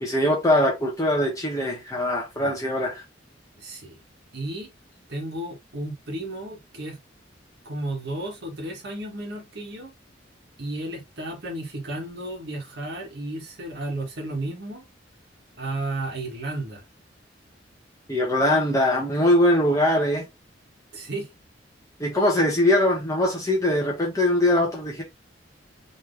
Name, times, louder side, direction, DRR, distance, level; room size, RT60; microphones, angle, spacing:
voice 1, 0.0-3.0 18.1-20.2 22.0-25.0, left 1 dB, 20° left, 1.0 m, -22 dB
voice 2, 3.6-4.0 4.3-4.7 5.1-7.0 7.6-9.9 10.6-14.8 15.6-16.8 20.9-21.3, right 1 dB, 60° right, 1.6 m, -33 dB
4.1 x 3.2 x 3.2 m
head